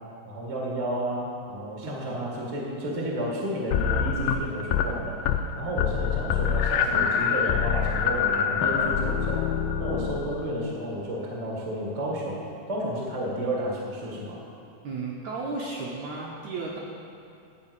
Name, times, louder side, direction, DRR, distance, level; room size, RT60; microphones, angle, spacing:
voice 1, 0.2-9.4 9.8-14.4, right 1 dB, 55° right, -3 dB, 0.4 m, -32 dB
voice 2, 1.8-2.2 5.7-5.9 14.8-16.8, right 3 dB, 75° right, -3 dB, 1.6 m, -34 dB
sound 1, 3.7-4.9 5.2-5.5 5.8-10.5, left 7 dB, 85° left, 2.3 m, -25 dB
11.5 x 4.6 x 8.1 m, 2.6 s
omnidirectional pair, 4.1 m